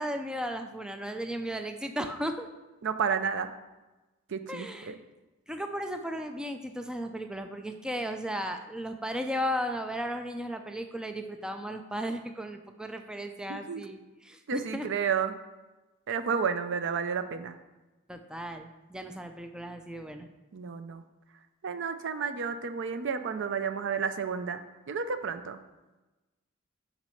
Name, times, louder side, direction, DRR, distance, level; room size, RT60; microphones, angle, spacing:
voice 1, 0.0-2.5 4.5-4.9 5.5-14.9 18.1-20.3, equal, 5° right, 6 dB, 0.4 m, -35 dB
voice 2, 2.8-3.5 4.3-5.0 13.5-13.9 14.5-15.4 16.1-17.5 20.5-21.0 21.6-25.6, right 6 dB, 60° right, 10 dB, 0.5 m, -31 dB
6.0 x 5.2 x 5.7 m, 1.1 s
head